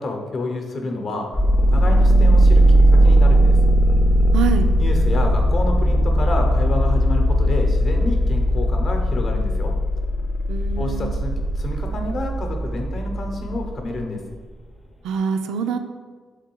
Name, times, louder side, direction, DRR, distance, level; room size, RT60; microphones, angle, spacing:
voice 1, 0.0-2.6 2.9-3.6 4.8-9.8 10.8-14.2, left 2 dB, 50° left, 3 dB, 0.7 m, -29 dB
sound 1, 1.3-14.0, right 1 dB, 20° left, 0.5 m, -18 dB
voice 2, 4.3-4.7 10.5-11.1 15.0-15.8, right 6 dB, 90° right, 7 dB, 0.3 m, -25 dB
3.7 x 3.1 x 4.4 m, 1.5 s
cardioid pair, 90°, 0 cm